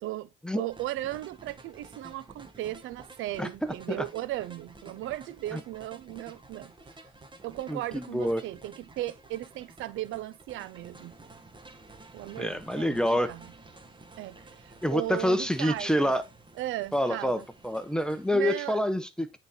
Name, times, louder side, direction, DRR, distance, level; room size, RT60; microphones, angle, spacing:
voice 1, 0.5-6.7 7.4-11.1 12.1-13.5 14.2-16.1 16.6-17.5 18.3-18.8, right 15 dB, 90° right, 0.6 m, -36 dB
sound 1, 0.7-18.4, right 2 dB, 25° right, 1.7 m, -52 dB
voice 2, 7.7-8.4 12.4-13.3 14.8-16.2 16.9-19.4, equal, 5° left, 1.0 m, -27 dB
8.9 x 4.3 x 4.2 m
cardioid pair, 90°, 20 cm